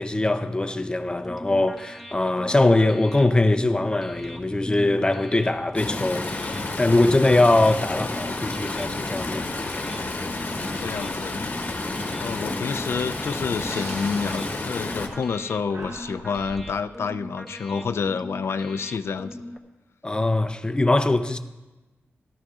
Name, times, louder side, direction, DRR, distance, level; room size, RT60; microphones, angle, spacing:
voice 1, 0.0-9.9 11.9-12.0 20.0-21.4, left 2 dB, 20° left, 0.6 m, -22 dB
sound 1, 1.1-19.6, left 1 dB, ahead, 1.0 m, -41 dB
Stream, 5.7-15.1, left 2 dB, 40° left, 1.2 m, -30 dB
voice 2, 10.6-11.5 12.2-19.6, left 5 dB, 65° left, 0.4 m, -29 dB
Breathing, 13.4-15.4 15.7-16.8, right 2 dB, 80° right, 1.1 m, -42 dB
17.0 x 12.5 x 2.4 m
wide cardioid pair, 105°, 5 cm